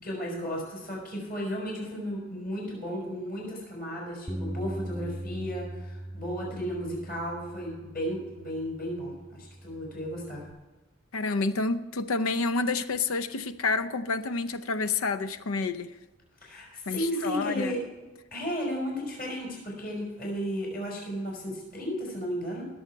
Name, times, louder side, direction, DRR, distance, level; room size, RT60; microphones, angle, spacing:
voice 1, 0.0-10.4 16.4-17.8 18.3-22.6, equal, 45° left, 5.0 m, -34 dB
Bass guitar, 4.3-10.5, right 1 dB, 5° right, 0.4 m, -40 dB
voice 2, 11.1-15.9 16.9-17.7, left 3 dB, 80° left, 0.6 m, -29 dB
20.0 x 7.1 x 4.6 m
head